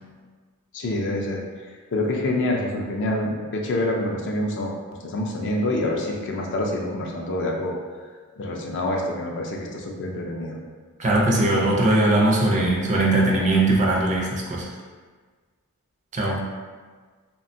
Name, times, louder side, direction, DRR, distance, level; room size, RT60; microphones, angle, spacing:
voice 1, 0.7-1.4 1.9-4.7 5.0-7.7 8.4-10.6, left 1 dB, 55° left, 0 dB, 0.4 m, -26 dB
voice 2, 11.0-14.7 16.1-16.4, right 2 dB, 35° right, -2 dB, 0.4 m, -20 dB
2.7 x 2.2 x 2.6 m, 1.5 s
head